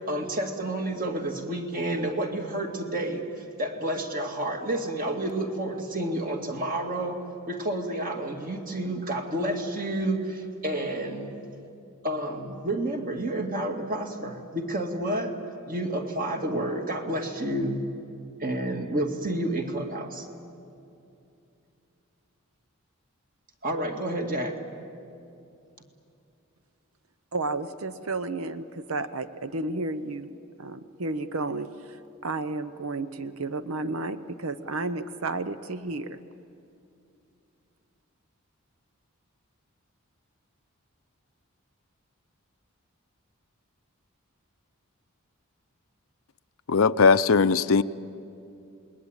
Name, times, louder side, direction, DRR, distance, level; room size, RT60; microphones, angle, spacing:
voice 1, 0.0-3.2 3.6-11.4 12.0-15.4 15.7-17.8 18.4-20.3 23.6-24.6, right 1 dB, 40° right, 2.3 m, -30 dB
voice 2, 27.3-30.3 30.6-36.2, right 3 dB, 80° right, 0.8 m, -32 dB
voice 3, 46.7-47.8, left 5 dB, 75° left, 0.6 m, -19 dB
28.0 x 21.0 x 8.9 m
head